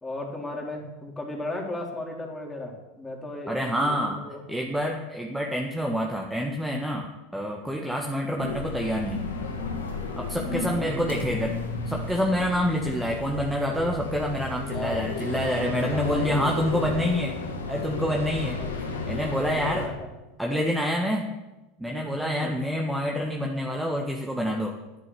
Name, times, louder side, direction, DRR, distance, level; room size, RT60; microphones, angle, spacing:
voice 1, 0.0-3.5 3.8-4.7 10.5-11.0 14.7-15.1 15.6-16.2 18.6-18.7 19.5-20.1 22.1-22.6, left 1 dB, 15° left, 1 dB, 3.7 m, -36 dB
voice 2, 3.5-4.2 4.5-9.2 10.2-11.6 11.9-17.4 17.7-19.9 20.4-21.3 21.8-24.8, equal, 5° right, 0 dB, 1.7 m, -27 dB
sound 1, 8.4-19.9, left 3 dB, 90° left, 2.1 m, -33 dB
11.0 x 9.7 x 7.0 m, 1.0 s
hypercardioid pair, 90°, 0 cm